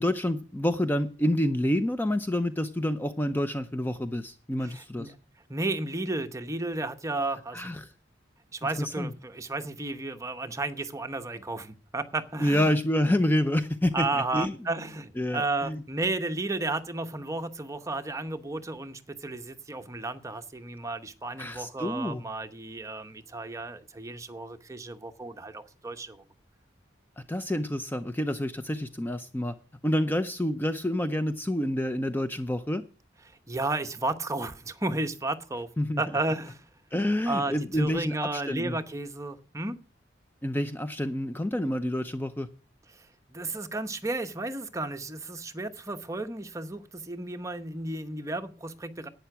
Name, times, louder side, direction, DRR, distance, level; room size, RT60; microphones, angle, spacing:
voice 1, 0.0-5.1 7.5-7.9 8.8-9.1 12.4-14.1 14.3-14.5 15.2-15.8 21.4-22.2 27.2-29.6 29.8-32.8 35.8-36.0 36.9-38.8 40.4-42.5, left 1 dB, 10° left, 0.5 m, -28 dB
voice 2, 4.6-5.1 5.5-7.7 8.5-12.8 13.9-26.2 33.5-35.7 36.0-36.6 37.3-39.8 42.9-49.1, right 2 dB, 15° right, 0.9 m, -33 dB
11.5 x 9.1 x 6.0 m
head